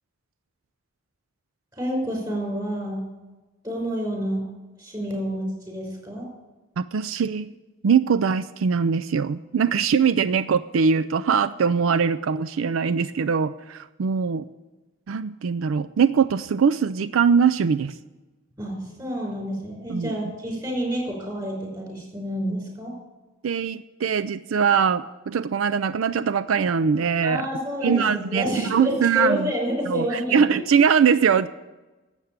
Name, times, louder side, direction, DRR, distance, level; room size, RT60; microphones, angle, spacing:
voice 1, 1.7-3.1 3.6-4.5 4.8-6.3 18.6-22.9 27.2-30.6, equal, 20° right, 0 dB, 5.3 m, -29 dB
voice 2, 6.8-7.5 7.8-14.4 15.1-18.0 19.9-20.1 23.4-27.4 27.8-29.5 29.9-31.5, right 6 dB, 90° right, 13 dB, 0.4 m, -22 dB
12.5 x 8.2 x 8.8 m, 1.1 s
head